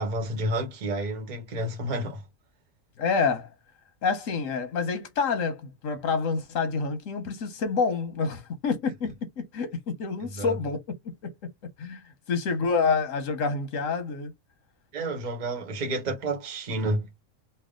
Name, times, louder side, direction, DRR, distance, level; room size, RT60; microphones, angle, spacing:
voice 1, 0.0-2.2 10.4-10.6 14.9-17.1, right 1 dB, 40° right, 0.9 m, -30 dB
voice 2, 3.0-3.5 4.0-10.8 11.8-12.0 12.3-14.3, left 5 dB, 85° left, 1.3 m, -27 dB
3.4 x 2.2 x 3.6 m
omnidirectional pair, 1.3 m